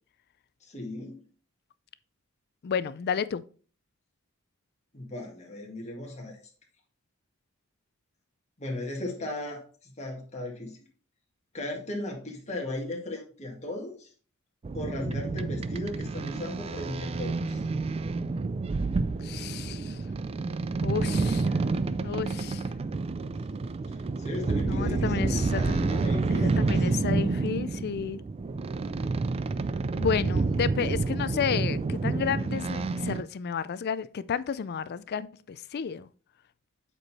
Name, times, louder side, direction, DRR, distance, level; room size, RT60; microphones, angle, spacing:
voice 1, 0.6-1.2 4.9-6.4 8.6-10.7 11.5-14.1 14.7-17.6 24.2-26.7, left 1 dB, 30° left, 1.9 m, -36 dB
voice 2, 2.6-3.4 19.2-20.0 20.8-21.6 22.0-22.6 24.5-25.8 26.3-28.2 30.0-36.1, left 7 dB, 50° left, 0.4 m, -32 dB
sound 1, 14.6-33.2, right 3 dB, 30° right, 0.3 m, -29 dB
7.9 x 4.6 x 4.1 m
head